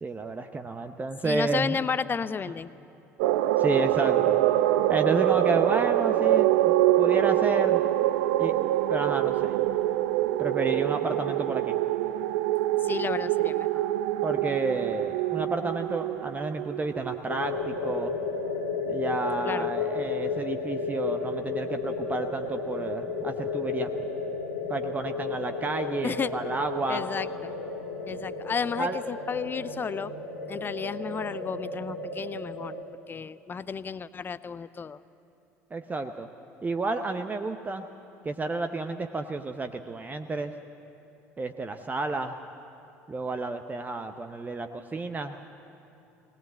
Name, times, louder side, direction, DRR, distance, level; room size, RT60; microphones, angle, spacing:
voice 1, 0.0-1.8 3.6-4.4 4.9-7.8 8.4-8.5 8.9-9.5 10.4-11.8 14.2-18.1 18.9-24.1 24.7-27.0 28.8-29.0 35.7-36.3 36.6-37.8 38.2-40.5 41.4-42.4 43.1-45.4, right 3 dB, 20° right, 7 dB, 0.8 m, -31 dB
voice 2, 1.2-2.7 12.8-13.8 19.5-19.7 26.0-26.3 26.9-27.5 28.1-30.1 30.5-32.7 33.1-35.0, left 6 dB, 25° left, 17 dB, 0.5 m, -32 dB
sound 1, 3.2-17.8, right 14 dB, 60° right, 0.5 m, -25 dB
sound 2, 17.3-32.8, left 4 dB, 75° left, 2.4 m, -33 dB
20.5 x 19.0 x 7.8 m, 2.9 s
figure-of-eight pair, 60°, 8 cm